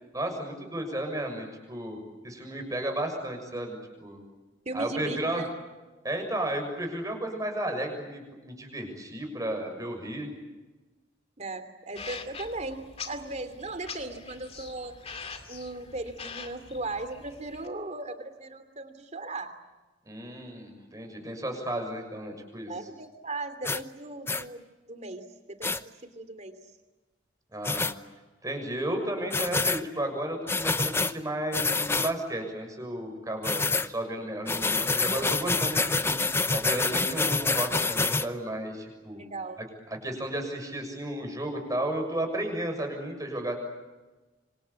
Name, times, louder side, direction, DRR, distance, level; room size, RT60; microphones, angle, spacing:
voice 1, 0.1-4.2 4.7-5.4 6.0-10.3 20.0-22.7 27.5-27.9 28.4-36.2 36.5-39.2 40.0-43.6, right 1 dB, 20° right, 4 dB, 6.7 m, -33 dB
voice 2, 4.6-5.5 11.4-14.9 15.5-19.5 22.7-25.2 25.6-25.7 26.1-26.6 39.1-39.6, right 2 dB, 35° right, 10 dB, 2.9 m, -37 dB
sound 1, 12.0-17.7, left 5 dB, 30° left, 2.3 m, -43 dB
sound 2, 23.6-23.8 24.3-24.4 25.6-25.8 27.6-27.9 29.3-29.8 30.5-31.1 31.5-32.1 33.4-33.9 34.5-38.3, left 3 dB, 15° left, 0.8 m, -27 dB
26.5 x 25.5 x 8.5 m, 1.2 s
head